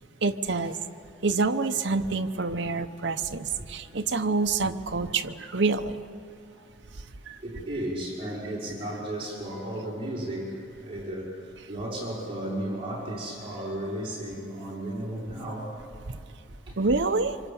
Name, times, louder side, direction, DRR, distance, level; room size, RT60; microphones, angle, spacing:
voice 1, 0.2-0.8 1.2-6.0 7.3-7.4 16.8-17.4, right 3 dB, 75° right, 6 dB, 0.9 m, -27 dB
voice 2, 3.6-4.0 5.1-5.2 6.6-6.7 7.4-15.7 16.7-16.8, right 1 dB, 30° right, -5 dB, 5.7 m, -34 dB
26.0 x 26.0 x 7.1 m, 2.5 s
head